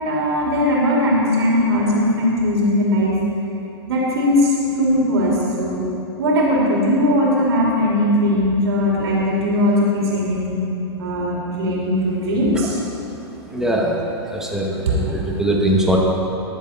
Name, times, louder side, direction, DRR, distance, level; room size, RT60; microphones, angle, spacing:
voice 1, 0.0-3.2 3.9-5.8 6.1-12.8 14.9-15.0, left 1 dB, 70° right, -5 dB, 3.1 m, -19 dB
voice 2, 13.5-14.0 14.3-16.0, right 1 dB, 5° right, -3 dB, 2.1 m, -21 dB
20.5 x 7.2 x 4.4 m, 2.9 s
hypercardioid pair, 110°, 14 cm